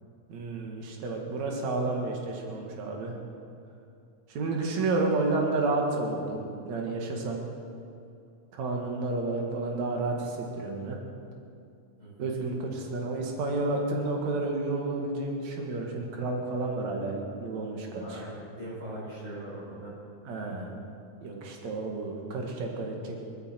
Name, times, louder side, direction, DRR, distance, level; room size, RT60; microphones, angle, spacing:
voice 1, 0.3-3.1 4.3-7.4 8.5-11.0 12.2-18.2 20.3-20.7 21.2-23.2, right 3 dB, 65° right, 0 dB, 3.0 m, -31 dB
voice 2, 12.0-12.4 18.0-19.9, right 1 dB, 40° right, -6 dB, 6.0 m, -40 dB
19.5 x 15.0 x 4.5 m, 2.5 s
omnidirectional pair, 3.4 m